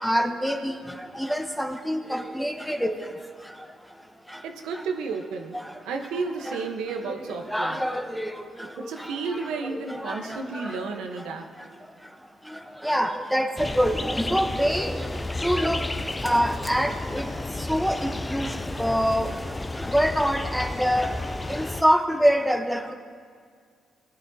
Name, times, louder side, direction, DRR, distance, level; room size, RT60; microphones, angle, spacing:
voice 1, 0.0-0.8 1.1-2.9 6.5-6.6 7.5-8.3 8.6-8.7 9.0-10.7 12.8-14.9 15.4-15.8 16.2-17.3 17.7-18.5 18.8-19.3 19.9-21.1 21.5-22.9, equal, ahead, 4 dB, 0.9 m, -25 dB
voice 2, 4.4-5.6 5.8-7.8 8.8-11.5, right 4 dB, 90° right, 4 dB, 1.0 m, -32 dB
sound 1, 13.6-21.8, left 2 dB, 15° left, 0.4 m, -32 dB
sound 2, 20.2-20.3, left 1 dB, 65° left, 2.5 m, -47 dB
19.5 x 10.0 x 2.8 m, 2.1 s
cardioid pair, 90°, 0 cm